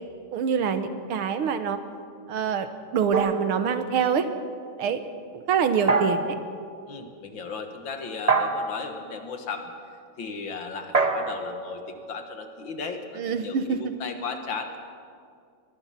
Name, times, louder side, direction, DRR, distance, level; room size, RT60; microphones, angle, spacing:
voice 1, 0.3-1.8 2.3-2.7 2.9-4.3 4.8-5.0 5.3-6.4 13.2-13.9, right 7 dB, 75° right, 9 dB, 2.0 m, -25 dB
sound 1, 3.1-4.2 5.9-6.5 8.3-8.9 10.9-12.7, right 4 dB, 30° right, 0.7 m, -26 dB
voice 2, 6.9-9.7 10.2-14.8, left 4 dB, 60° left, 6 dB, 2.3 m, -36 dB
23.5 x 20.5 x 5.9 m, 2.3 s
omnidirectional pair, 2.4 m